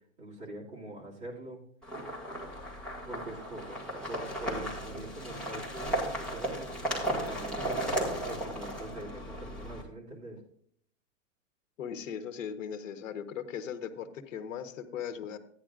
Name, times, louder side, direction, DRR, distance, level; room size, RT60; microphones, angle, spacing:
voice 1, 0.2-1.6 3.0-3.8 4.1-6.7 7.1-10.4, right 1 dB, 20° right, -6 dB, 2.5 m, -43 dB
sound 1, 1.8-9.8, right 1 dB, 5° left, 1.9 m, -35 dB
voice 2, 11.8-15.4, left 8 dB, 75° left, 9 dB, 1.2 m, -38 dB
14.0 x 9.8 x 2.5 m, 0.64 s
supercardioid pair, 170°, 39 cm